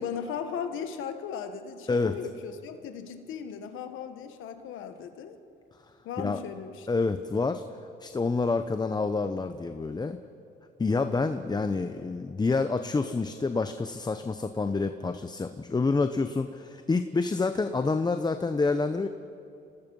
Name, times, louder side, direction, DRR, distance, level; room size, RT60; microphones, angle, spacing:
voice 1, 0.0-5.4 6.0-6.9, left 7 dB, 90° left, 8 dB, 1.3 m, -37 dB
voice 2, 6.9-7.6 8.0-10.2 10.8-19.1, left 3 dB, 20° left, 9 dB, 0.8 m, -28 dB
27.0 x 18.5 x 5.5 m, 2.7 s
cardioid pair, 90°, 20 cm